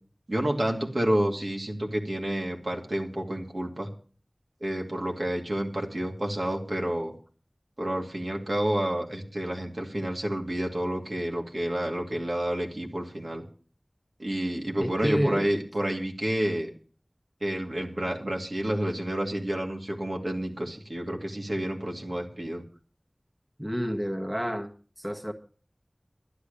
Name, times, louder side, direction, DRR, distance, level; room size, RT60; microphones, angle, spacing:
voice 1, 0.3-3.9 4.6-7.1 7.8-13.4 14.2-16.7 17.4-22.6, right 1 dB, 75° right, 1 dB, 2.5 m, -29 dB
voice 2, 14.8-15.5 23.6-24.7 25.0-25.3, equal, 20° right, 4 dB, 1.6 m, -29 dB
11.5 x 10.5 x 6.8 m, 0.41 s
wide cardioid pair, 40°, 0 cm